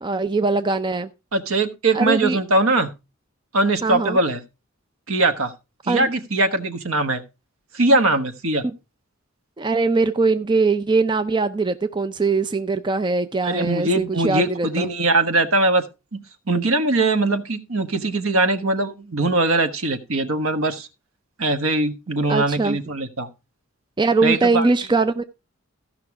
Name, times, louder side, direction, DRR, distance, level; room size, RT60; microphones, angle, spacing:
voice 1, 0.0-1.1 1.9-2.4 3.8-4.2 5.9-6.1 8.6-8.8 9.6-14.9 22.3-22.8 24.0-25.2, right 3 dB, 20° right, 0.4 m, -21 dB
voice 2, 1.3-2.9 3.5-4.4 5.1-5.5 5.8-7.2 7.7-8.6 13.4-15.9 16.1-16.2 16.5-20.9 21.4-23.3 24.2-24.7, right 2 dB, 75° right, 1.2 m, -21 dB
14.5 x 5.8 x 4.7 m
head